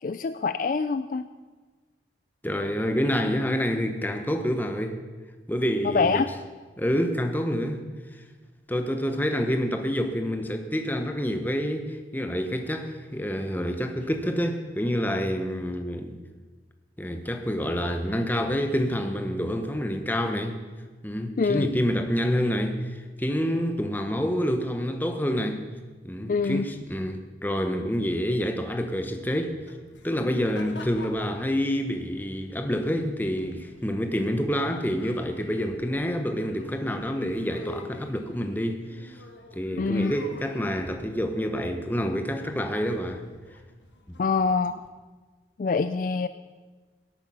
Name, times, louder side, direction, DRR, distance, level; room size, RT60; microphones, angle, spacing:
voice 1, 0.0-1.3 5.8-6.3 21.4-21.7 26.3-26.6 39.8-40.1 44.2-44.7 45.6-46.3, left 4 dB, 50° left, 12 dB, 0.4 m, -25 dB
voice 2, 2.4-5.0 5.5-6.2 6.8-7.8 8.1-8.2 8.7-16.2 17.0-20.6 21.0-25.6 26.0-29.6 30.0-39.2 39.5-43.2, equal, 10° left, 6 dB, 1.0 m, -27 dB
sound 1, 29.3-44.9, left 2 dB, 90° left, 1.5 m, -48 dB
17.0 x 9.0 x 5.5 m, 1.4 s
head